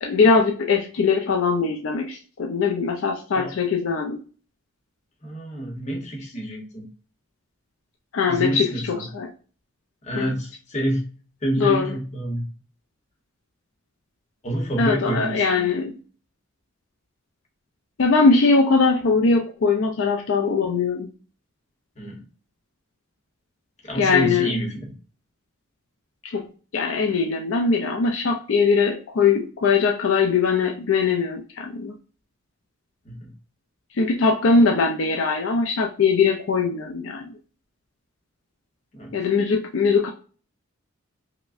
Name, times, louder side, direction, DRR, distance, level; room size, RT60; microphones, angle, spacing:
voice 1, 0.0-4.2 8.1-9.3 10.2-10.3 11.6-11.9 14.8-15.9 18.0-21.1 24.0-24.6 26.2-26.5 26.7-31.9 33.9-37.3 39.1-40.1, left 4 dB, 65° left, 2 dB, 0.4 m, -21 dB
voice 2, 5.2-6.9 8.3-9.1 10.0-11.1 11.4-12.4 14.4-15.7 22.0-22.2 23.8-24.9 33.0-33.3 38.9-39.2, right 1 dB, 35° left, 1 dB, 0.9 m, -28 dB
4.7 x 2.1 x 2.4 m, 0.39 s
head